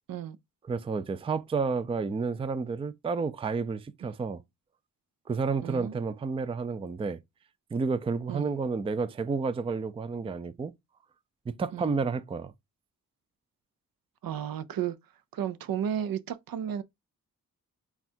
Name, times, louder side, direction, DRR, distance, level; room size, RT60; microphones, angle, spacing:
voice 1, 0.7-4.4 5.3-7.2 7.7-10.7 11.5-12.5, right 4 dB, 15° right, 0.3 m, -30 dB
voice 2, 5.6-6.0 8.3-8.5 11.7-12.0 14.2-15.0 15.3-16.8, right 9 dB, 80° right, 0.5 m, -33 dB
3.5 x 2.4 x 4.2 m
cardioid pair, 85°, 35 cm